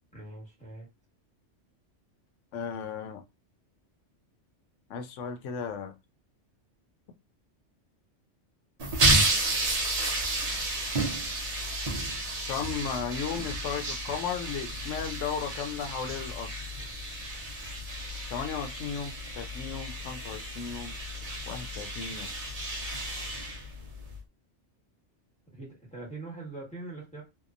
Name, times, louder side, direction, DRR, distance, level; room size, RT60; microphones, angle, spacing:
voice 1, 0.1-0.9 25.5-27.2, right 2 dB, 5° left, -4 dB, 1.1 m, -42 dB
voice 2, 2.5-3.2 4.9-5.9 12.5-16.5 18.3-21.0 21.5-22.3, left 7 dB, 80° left, 7 dB, 0.9 m, -35 dB
sound 1, 8.8-24.2, right 2 dB, 40° right, 0.6 m, -31 dB
2.8 x 2.3 x 2.4 m, 0.24 s
omnidirectional pair, 1.3 m